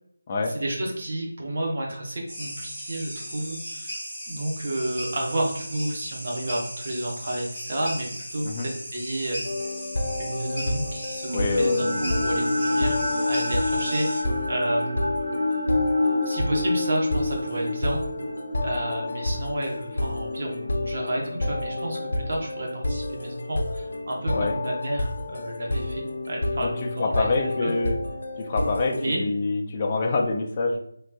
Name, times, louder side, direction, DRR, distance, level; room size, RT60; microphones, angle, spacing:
voice 1, 0.5-4.0 4.3-9.4 10.2-15.0 16.2-18.0 18.6-27.7 28.9-29.2, right 1 dB, 40° right, -1 dB, 0.7 m, -31 dB
sound 1, 2.3-14.2, equal, 5° right, 1.3 m, -37 dB
sound 2, 9.4-29.2, left 2 dB, 70° left, 0.6 m, -30 dB
voice 2, 11.3-12.0 24.3-24.5 26.6-26.7 27.0-28.0 28.4-30.8, left 3 dB, 20° left, 1 dB, 0.3 m, -25 dB
sound 3, 11.3-21.4, left 2 dB, 75° right, 1.0 m, -28 dB
3.2 x 2.8 x 2.2 m, 0.72 s
figure-of-eight pair, 175°, 0 cm